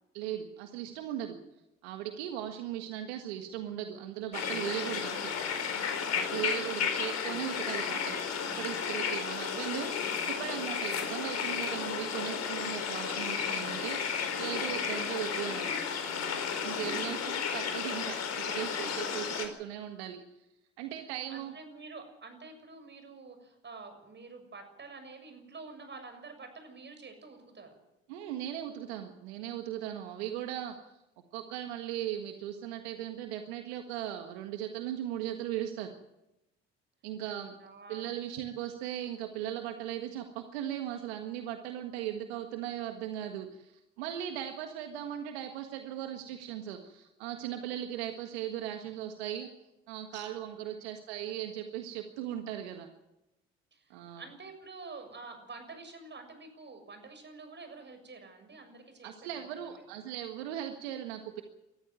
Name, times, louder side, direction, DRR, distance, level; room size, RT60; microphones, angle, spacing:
voice 1, 0.1-1.4 1.8-5.3 6.1-15.8 16.1-20.2 20.8-21.5 28.1-30.8 31.3-35.9 37.0-37.5 37.9-43.7 44.0-49.5 49.9-52.9 53.9-54.2 59.0-61.4, right 11 dB, 80° right, 5 dB, 1.7 m, -38 dB
sound 1, 4.3-19.5, left 6 dB, 55° left, 4.5 m, -33 dB
voice 2, 21.3-27.7 37.3-38.2 50.1-50.3 50.6-50.9 53.7-59.8, right 3 dB, 35° right, 7 dB, 7.0 m, -48 dB
21.0 x 14.5 x 9.4 m, 0.92 s
hypercardioid pair, 60°, 32 cm